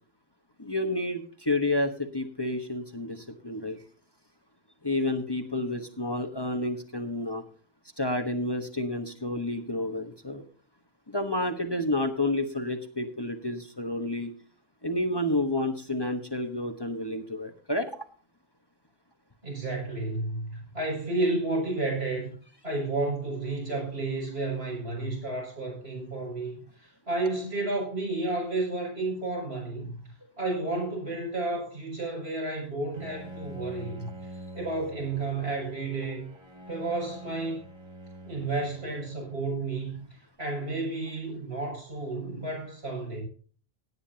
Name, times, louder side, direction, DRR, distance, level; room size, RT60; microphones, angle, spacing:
voice 1, 0.6-3.8 4.8-7.4 8.0-10.4 11.1-14.3 14.8-18.0, left 1 dB, 25° left, 5 dB, 1.2 m, -30 dB
voice 2, 19.4-22.3 22.6-30.1 30.4-34.1 34.5-36.3 36.7-37.6 38.2-40.0 40.4-43.2, right 2 dB, 75° right, -2 dB, 7.1 m, -31 dB
Bowed string instrument, 32.9-40.0, right 1 dB, 25° right, 2.0 m, -46 dB
17.5 x 9.7 x 2.8 m, 0.42 s
omnidirectional pair, 1.1 m